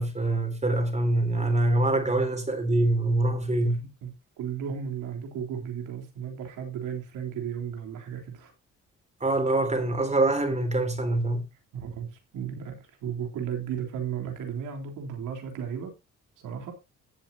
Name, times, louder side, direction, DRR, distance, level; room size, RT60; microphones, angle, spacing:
voice 1, 0.0-3.8 9.2-11.5, right 2 dB, 20° right, 3.7 m, -24 dB
voice 2, 3.6-4.1 4.4-8.5 11.7-15.9 16.4-16.7, right 8 dB, 85° right, 3.5 m, -35 dB
16.0 x 7.7 x 2.8 m
cardioid pair, 90°, 30 cm